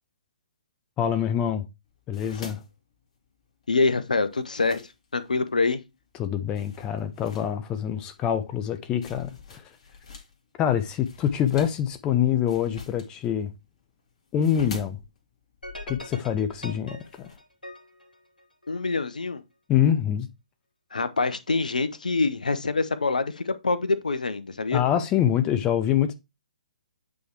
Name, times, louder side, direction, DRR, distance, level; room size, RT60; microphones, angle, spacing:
voice 1, 1.0-1.6 2.1-2.6 6.2-9.6 10.6-13.5 14.3-15.0 15.9-17.3 19.7-20.3 24.7-26.1, left 9 dB, 20° left, 0.6 m, -25 dB
sound 1, 1.9-5.5 6.0-6.2 6.6-10.3 10.6-17.4, left 4 dB, 45° left, 2.0 m, -45 dB
voice 2, 3.7-4.8 5.1-5.8 18.7-19.4 20.9-24.8, left 3 dB, 70° left, 0.8 m, -25 dB
sound 2, 15.6-19.0, equal, 90° left, 1.9 m, -43 dB
8.3 x 3.3 x 4.6 m
figure-of-eight pair, 130°, 4 cm